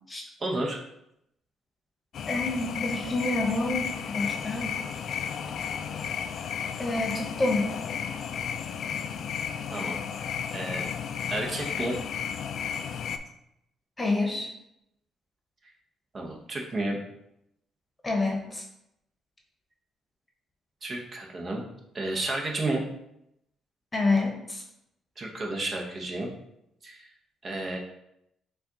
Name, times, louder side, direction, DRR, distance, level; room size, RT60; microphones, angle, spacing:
voice 1, 0.4-0.8 9.7-10.0 10.5-10.9 11.3-11.9 16.1-17.0 20.8-21.6 21.9-22.8 25.2-26.3 26.8-27.1 27.4-27.8, right 2 dB, 40° right, 0 dB, 0.9 m, -31 dB
sound 1, 2.1-13.2, left 7 dB, 65° left, 0.3 m, -33 dB
voice 2, 2.3-4.8 6.8-7.7 14.0-14.5 18.0-18.6 23.9-24.6, left 2 dB, 20° left, 1 dB, 1.0 m, -28 dB
5.7 x 2.4 x 3.8 m, 0.81 s
cardioid pair, 90°, 0 cm